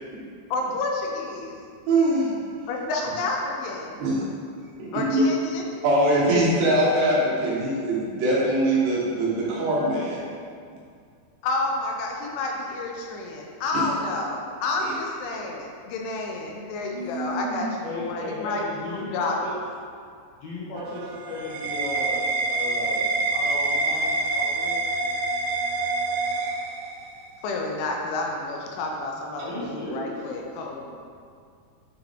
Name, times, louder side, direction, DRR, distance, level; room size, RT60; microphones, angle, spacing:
voice 1, 0.5-1.6 2.7-4.0 4.9-5.7 11.4-19.5 27.4-30.9, left 2 dB, 80° left, 0 dB, 3.2 m, -30 dB
voice 2, 1.9-2.3 4.0-4.2 4.8-5.2 5.8-10.2 13.7-13.9 16.9-17.6, right 1 dB, 70° right, -6 dB, 3.3 m, -23 dB
voice 3, 17.8-19.5 20.4-22.2 22.5-23.0 23.3-24.8 29.4-30.1, left 1 dB, 65° left, -8 dB, 2.8 m, -35 dB
sound 1, 20.8-27.2, right 3 dB, 85° right, 3.1 m, -26 dB
10.5 x 4.7 x 3.6 m, 2.2 s
omnidirectional pair, 5.5 m